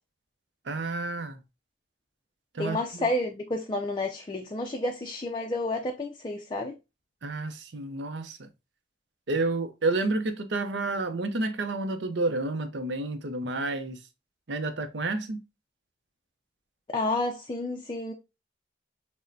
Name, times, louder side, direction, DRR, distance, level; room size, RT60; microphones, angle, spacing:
voice 1, 0.6-1.4 2.5-3.1 7.2-8.5 9.3-14.0 14.5-15.4, right 2 dB, 70° right, 0.6 m, -30 dB
voice 2, 2.6-6.7 16.9-18.1, left 2 dB, 25° left, 0.4 m, -30 dB
6.1 x 2.1 x 2.5 m
head